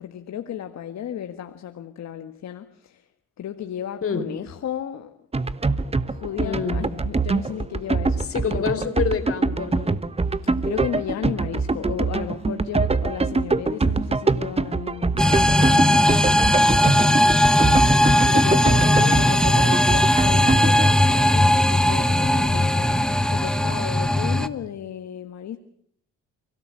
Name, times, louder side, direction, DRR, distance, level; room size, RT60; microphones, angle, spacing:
voice 1, 0.0-3.1 3.4-5.2 5.7-8.8 10.4-17.4 17.9-25.6, left 10 dB, 65° left, 1.6 m, -34 dB
sound 1, 5.3-20.9, right 3 dB, 20° right, 1.2 m, -24 dB
voice 2, 6.4-6.8 8.3-10.0 18.9-19.4, left 6 dB, 45° left, 4.1 m, -28 dB
sound 2, 15.2-24.5, left 1 dB, ahead, 1.4 m, -18 dB
29.0 x 17.5 x 7.6 m
cardioid pair, 90°, 30 cm